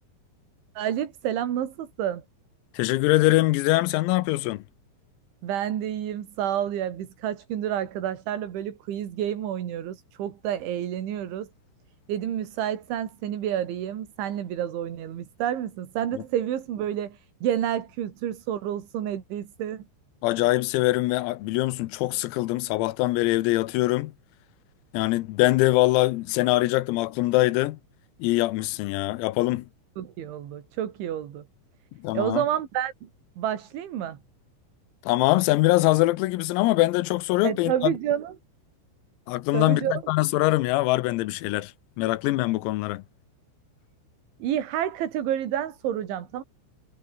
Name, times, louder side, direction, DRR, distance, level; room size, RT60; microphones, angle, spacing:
voice 1, 0.8-2.2 5.4-11.5 12.1-19.8 30.0-31.4 32.1-33.1 33.4-34.2 37.4-38.3 39.5-40.0 44.4-46.4, right 10 dB, 65° right, 4.8 m, -29 dB
voice 2, 2.8-4.6 16.1-16.2 20.2-24.1 24.9-27.8 28.2-29.7 32.0-32.4 35.1-37.9 39.3-41.7 42.0-43.0, left 18 dB, 90° left, 3.8 m, -23 dB
omnidirectional pair, 6.0 m